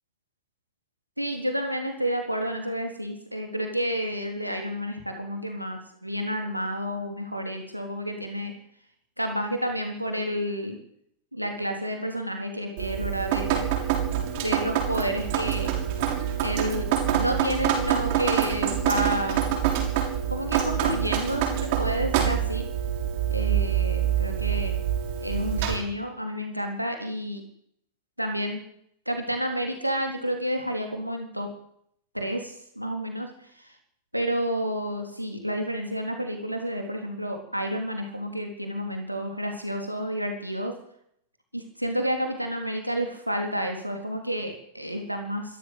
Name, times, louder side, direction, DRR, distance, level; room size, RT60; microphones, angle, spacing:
voice 1, 1.2-8.5 9.2-10.8 11.3-13.7 14.4-15.7 16.4-19.5 20.3-22.7 23.3-24.8 25.2-27.4 28.2-28.6 29.1-31.5 32.1-33.7 34.1-40.7 41.5-45.6, equal, 90° right, 4 dB, 3.7 m, -30 dB
Drip, 12.8-25.8, right 9 dB, 50° right, 6.3 m, -26 dB
25.0 x 14.0 x 8.2 m, 0.70 s
figure-of-eight pair, 90°, 0 cm